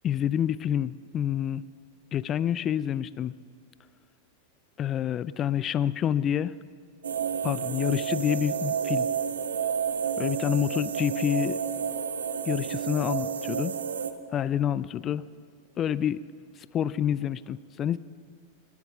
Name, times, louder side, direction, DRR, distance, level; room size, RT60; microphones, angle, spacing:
voice 1, 0.0-1.6 2.1-3.3 4.8-6.5 7.4-9.1 10.2-11.6 12.5-13.7 14.3-15.2 15.8-16.2 16.7-18.0, left 9 dB, 30° left, 18 dB, 0.3 m, -27 dB
sound 1, 7.0-14.1, right 7 dB, 65° right, 0.6 m, -30 dB
20.0 x 7.2 x 7.0 m, 2.1 s
figure-of-eight pair, 90°, 0 cm